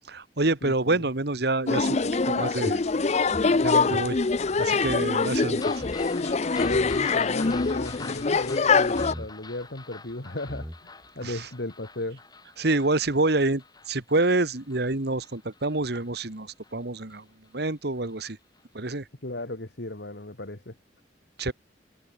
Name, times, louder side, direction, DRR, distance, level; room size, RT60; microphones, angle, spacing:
voice 1, 0.1-2.0 2.3-2.8 3.6-4.2 4.6-5.7 11.2-11.5 12.6-18.4 18.7-19.1 21.4-21.5, right 2 dB, 65° right, 1.8 m, -27 dB
voice 2, 0.6-1.0 6.5-12.2 19.2-20.7, left 2 dB, 65° left, 2.2 m, -36 dB
sound 1, 1.7-9.1, left 4 dB, 40° left, 0.6 m, -24 dB
sound 2, 2.6-5.1 5.4-5.5 5.7-6.0 6.6-7.1 7.4-8.0 8.9-9.3 10.1-10.2 10.5-11.1, equal, ahead, 2.8 m, -40 dB
sound 3, 5.5-16.3 16.6-16.7 17.1-17.2 17.6-17.7, left 4 dB, 25° left, 7.8 m, -45 dB
head